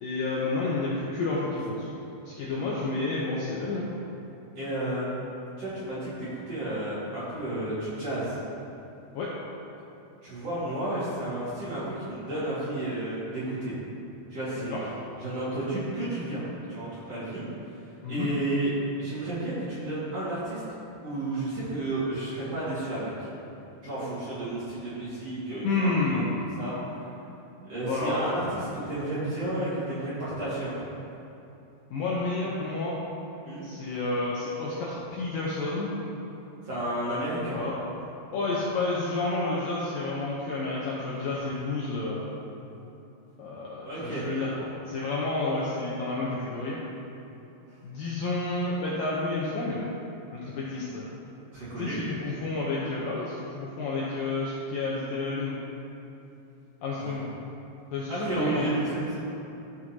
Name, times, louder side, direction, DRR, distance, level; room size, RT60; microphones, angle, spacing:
voice 1, 0.0-1.9 2.3-3.9 9.1-9.3 14.6-14.8 18.0-18.3 25.6-26.4 27.8-28.2 31.9-33.0 33.6-35.9 37.5-37.7 38.3-42.3 43.4-46.8 47.8-49.8 50.3-51.1 51.8-55.6 56.8-57.3 57.9-58.7, left 3 dB, 75° left, -6 dB, 2.1 m, -30 dB
voice 2, 4.6-5.1 5.6-8.4 10.2-13.7 14.3-14.7 15.2-16.4 16.7-17.4 18.1-20.6 21.0-23.3 23.8-26.2 26.6-26.7 27.6-30.7 33.4-33.6 36.7-37.6 43.8-44.2 51.5-52.0 57.0-57.2 58.1-59.2, right 1 dB, 45° right, -11 dB, 2.5 m, -32 dB
13.5 x 6.1 x 2.9 m, 2.9 s
omnidirectional pair, 5.0 m